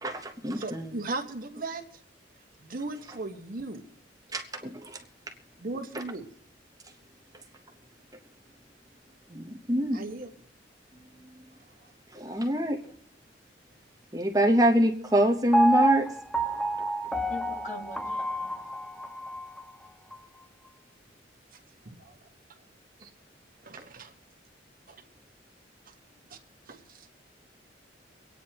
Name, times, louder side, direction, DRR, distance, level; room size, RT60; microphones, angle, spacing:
voice 1, 0.0-1.0 4.3-5.0 9.3-10.0 12.1-12.8 14.1-16.1, right 1 dB, 20° right, 3 dB, 0.9 m, -25 dB
voice 2, 0.6-1.8 2.6-3.8 5.6-6.3 9.9-10.3 21.8-22.1 23.0-23.1 23.6-24.1 24.9-25.0 26.3-26.4 26.7-27.1, right 3 dB, 50° right, 5 dB, 1.3 m, -37 dB
Piano, 15.5-19.6 20.1-20.2, right 1 dB, 5° left, 0.5 m, -28 dB
voice 3, 17.3-18.5, left 1 dB, 40° left, 3 dB, 1.7 m, -42 dB
24.5 x 9.4 x 2.9 m, 0.72 s
head